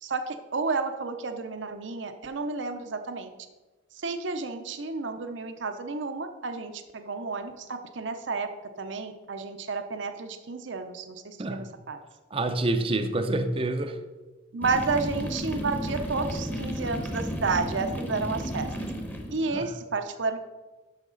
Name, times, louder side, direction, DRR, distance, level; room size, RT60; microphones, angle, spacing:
voice 1, 0.0-3.3 4.0-8.5 8.8-11.6 11.9-12.0 14.5-18.7 19.3-20.4, right 4 dB, 70° right, 7 dB, 0.7 m, -31 dB
voice 2, 12.3-14.0 19.5-19.7, right 2 dB, 30° right, 8 dB, 0.5 m, -27 dB
sound 1, 14.6-19.7, equal, 10° left, 0.9 m, -33 dB
11.0 x 6.5 x 3.9 m, 1.2 s
head